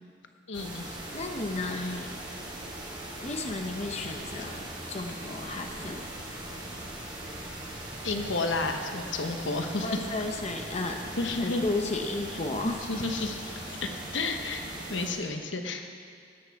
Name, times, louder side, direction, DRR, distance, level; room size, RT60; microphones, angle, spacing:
voice 1, 0.5-1.0 1.7-1.9 8.0-10.0 11.2-11.6 12.9-14.6 14.9-15.9, left 3 dB, 85° left, 5 dB, 1.0 m, -31 dB
sound 1, 0.5-15.1, right 1 dB, 25° right, 2.8 m, -40 dB
voice 2, 1.1-2.1 3.2-4.6 4.9-6.1 9.8-11.0 11.4-12.8, left 2 dB, 35° left, 4 dB, 0.9 m, -33 dB
16.5 x 9.3 x 4.7 m, 2.4 s
head